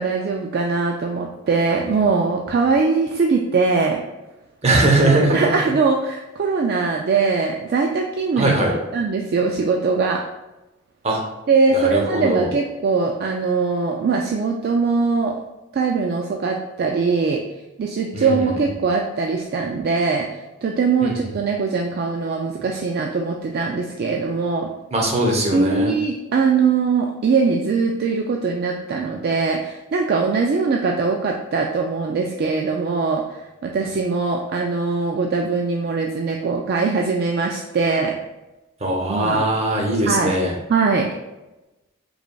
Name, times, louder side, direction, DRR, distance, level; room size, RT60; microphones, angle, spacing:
voice 1, 0.0-4.0 5.0-10.2 11.5-15.4 15.7-17.4 17.8-24.7 25.5-33.2 33.6-38.1 39.1-39.5 40.1-40.3 40.7-41.1, right 4 dB, 50° right, 1 dB, 0.3 m, -21 dB
voice 2, 4.6-5.6 8.4-8.7 11.0-11.2 11.7-12.5 18.1-18.5 21.0-21.2 24.9-26.0 38.8-40.5, right 1 dB, 30° right, 0 dB, 0.8 m, -20 dB
4.9 x 3.2 x 2.3 m, 1.0 s
head